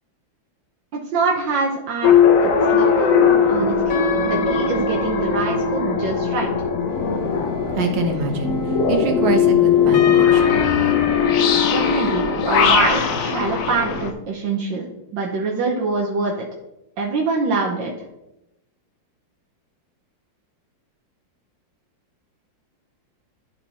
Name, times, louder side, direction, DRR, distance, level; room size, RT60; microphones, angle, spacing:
voice 1, 1.1-3.1 3.5-6.5 11.7-14.9 15.1-16.4 17.0-17.9, right 3 dB, 70° right, -2 dB, 1.6 m, -24 dB
sound 1, 2.0-14.1, left 6 dB, 60° left, 0.9 m, -18 dB
voice 2, 7.1-10.7, right 3 dB, 85° right, 3 dB, 2.0 m, -26 dB
11.0 x 4.1 x 4.2 m, 0.89 s
omnidirectional pair, 2.2 m